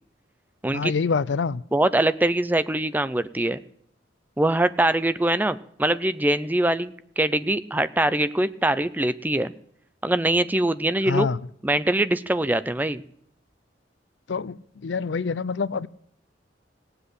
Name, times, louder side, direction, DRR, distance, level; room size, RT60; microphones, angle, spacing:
voice 1, 0.7-1.6 11.1-11.4 14.3-15.9, left 5 dB, 75° left, 20 dB, 0.5 m, -26 dB
voice 2, 1.7-3.6 4.4-9.5 10.0-11.3 11.6-13.0, right 1 dB, 10° right, 14 dB, 0.5 m, -23 dB
17.5 x 8.0 x 8.2 m, 0.66 s
head